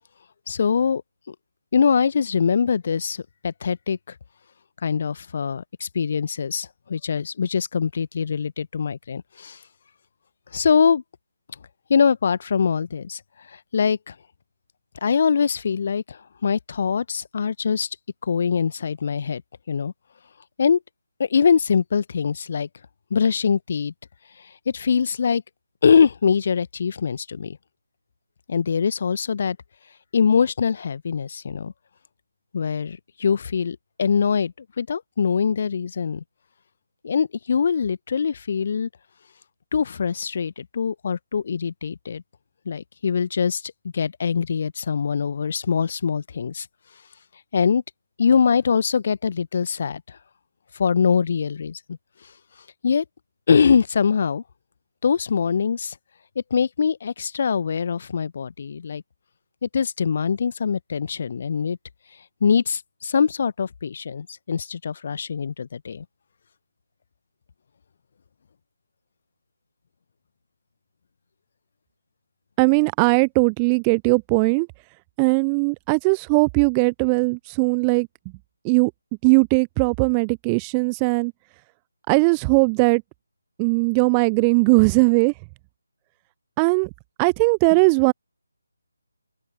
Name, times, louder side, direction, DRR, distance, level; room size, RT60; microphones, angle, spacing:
voice 1, 0.5-1.0 1.3-1.4 1.7-4.0 4.8-9.6 10.5-11.0 11.9-13.2 13.5-14.1 15.0-17.9 18.2-19.4 19.7-19.9 20.6-20.8 21.2-22.7 23.1-23.9 24.7-25.4 25.8-27.6 28.5-29.6 30.1-31.7 32.5-36.2 37.0-38.9 39.7-42.2 42.7-46.7 47.5-47.8 48.2-50.2 50.7-52.0 52.8-53.0 53.5-54.4 55.0-55.9 56.5-59.0 59.6-61.8 62.4-66.0, left 6 dB, 40° left, 1.1 m, -23 dB
voice 2, 72.6-74.7 75.2-78.1 78.6-78.9 79.2-81.3 82.1-83.0 83.6-85.3 86.6-86.9 87.2-88.1, right 33 dB, 15° right, 0.4 m, -19 dB
open air
figure-of-eight pair, 150°, 0 cm